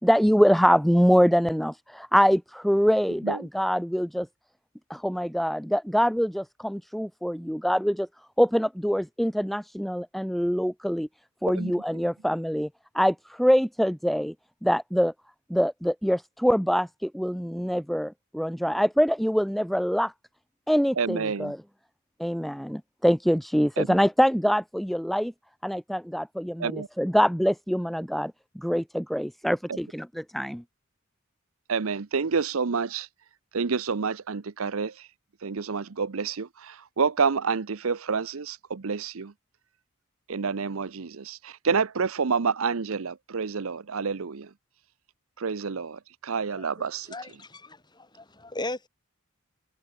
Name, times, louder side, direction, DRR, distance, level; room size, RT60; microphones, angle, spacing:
voice 1, 0.0-4.3 4.9-8.1 8.4-11.1 11.4-12.7 12.9-14.3 14.6-15.1 15.5-20.1 20.7-21.6 22.2-25.3 25.6-30.6, equal, ahead, 1.3 m, -24 dB
voice 2, 21.0-21.5 23.8-23.9 26.6-26.9 31.7-33.1 33.5-34.9 35.4-39.3 40.3-44.5 45.4-47.1, right 5 dB, 70° right, 0.7 m, -28 dB
voice 3, 46.5-48.9, left 2 dB, 20° left, 7.7 m, -38 dB
head